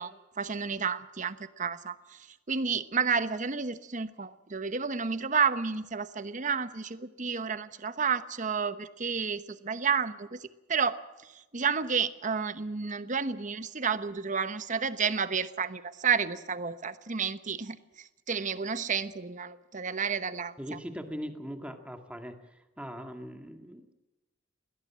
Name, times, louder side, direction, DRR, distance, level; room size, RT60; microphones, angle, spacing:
voice 1, 0.0-2.2 2.5-11.0 11.5-20.8, right 6 dB, 40° right, 13 dB, 1.0 m, -31 dB
voice 2, 20.6-22.4 22.8-23.9, equal, 5° right, 6 dB, 2.0 m, -40 dB
21.5 x 17.5 x 7.5 m, 1.0 s
head